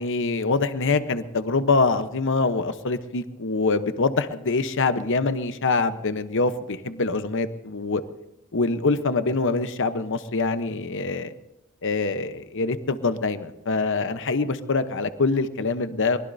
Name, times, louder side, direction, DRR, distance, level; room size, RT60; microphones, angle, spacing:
voice 1, 0.0-8.0 8.5-11.3 11.8-16.2, left 3 dB, 60° left, 11 dB, 0.9 m, -24 dB
22.5 x 20.0 x 2.7 m, 0.87 s
head